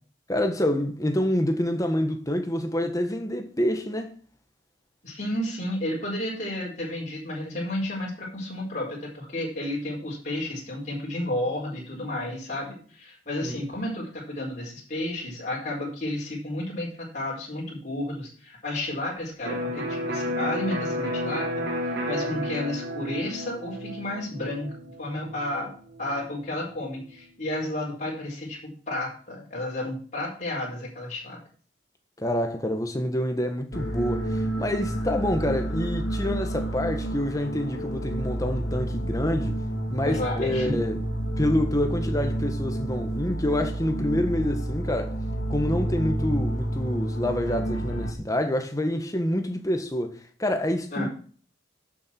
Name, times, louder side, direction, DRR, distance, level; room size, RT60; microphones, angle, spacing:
voice 1, 0.3-4.1 13.4-13.7 32.2-39.6 39.9-41.0 41.4-45.2 45.5-51.1, left 1 dB, 15° left, 1.4 m, -27 dB
voice 2, 5.0-25.7 26.0-31.4 40.0-40.7 50.9-51.1, left 1 dB, 40° left, 4.4 m, -32 dB
Electric guitar, 19.4-27.1, equal, 65° right, 2.9 m, -32 dB
sound 1, 33.7-48.1, right 1 dB, 90° left, 2.2 m, -30 dB
12.5 x 6.9 x 4.5 m
head